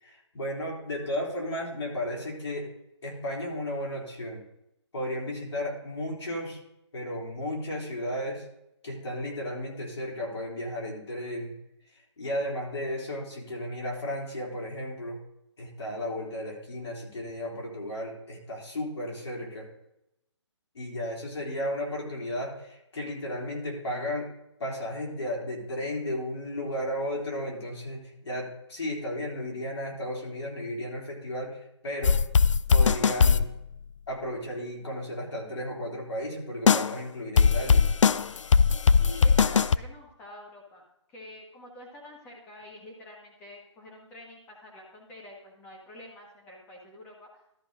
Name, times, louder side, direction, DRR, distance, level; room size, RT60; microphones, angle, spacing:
voice 1, 0.0-2.7 3.0-4.4 4.9-6.6 6.9-8.5 8.8-11.5 12.2-15.2 15.6-19.7 20.7-24.3 24.6-32.2 32.7-33.5 34.1-37.8, left 1 dB, 65° left, -2 dB, 3.7 m, -34 dB
sound 1, 32.0-33.5 36.7-36.9 37.4-39.8, left 5 dB, 80° left, 0.5 m, -20 dB
voice 2, 39.0-47.4, left 1 dB, 10° left, -2 dB, 1.5 m, -47 dB
13.5 x 5.8 x 3.8 m, 0.83 s
hypercardioid pair, 170°, 16 cm